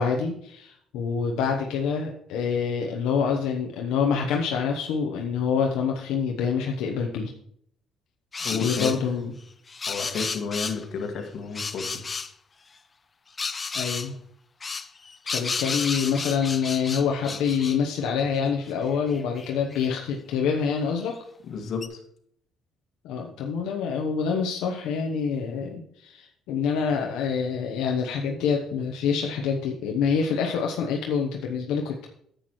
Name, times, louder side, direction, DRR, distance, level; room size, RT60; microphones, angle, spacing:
voice 1, 0.0-7.3 8.5-9.3 13.7-14.1 15.2-21.2 23.0-32.1, left 6 dB, 90° left, 1 dB, 0.9 m, -26 dB
sound 1, 8.3-9.0 9.7-10.8 11.5-12.3 13.4-14.1 14.6-17.8 18.4-18.5 18.7-19.9 21.1-21.2 21.8-21.9, left 4 dB, 30° left, 0.5 m, -32 dB
voice 2, 8.4-8.9 9.9-12.1 21.4-22.0, left 5 dB, 65° left, 3 dB, 1.8 m, -32 dB
10.0 x 8.1 x 3.1 m, 0.67 s
cardioid pair, 100°, 0 cm